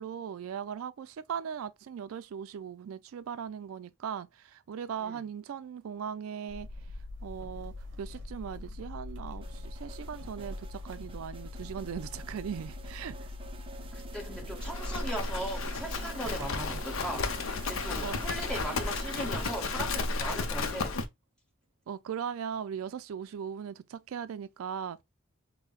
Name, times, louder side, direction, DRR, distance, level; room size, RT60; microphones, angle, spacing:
voice 1, 0.0-6.7 7.2-13.3 18.0-18.2 21.9-25.0, right 7 dB, 90° right, 0.3 m, -39 dB
sound 1, 6.5-18.9, left 2 dB, 60° right, 0.7 m, -43 dB
sound 2, 9.4-20.1, right 4 dB, 25° right, 0.5 m, -48 dB
voice 2, 13.9-21.0, right 1 dB, 5° left, 1.4 m, -38 dB
Livestock farm animals working animals, 14.6-21.1, left 3 dB, 85° left, 0.7 m, -33 dB
5.4 x 2.1 x 2.3 m
head